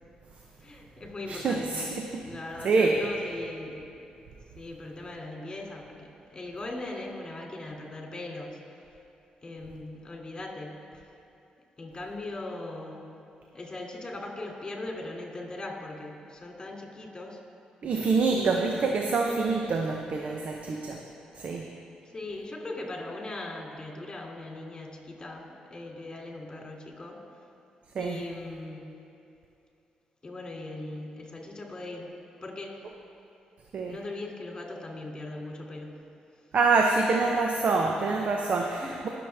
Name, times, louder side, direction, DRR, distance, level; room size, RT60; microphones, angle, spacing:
voice 1, 0.6-2.0 2.2-3.9 4.6-8.6 9.4-10.8 11.8-13.1 13.5-17.4 18.3-18.8 22.0-27.2 28.0-28.9 30.2-32.1 32.4-32.9 33.9-35.9 38.8-39.0, left 2 dB, 30° left, -1 dB, 2.7 m, -39 dB
voice 2, 1.3-2.2 2.6-3.0 17.8-21.0 21.3-21.6 27.9-28.2 33.7-34.0 36.5-39.1, right 4 dB, 60° right, 1 dB, 0.8 m, -26 dB
19.5 x 7.1 x 3.5 m, 2.7 s
cardioid pair, 70°, 3 cm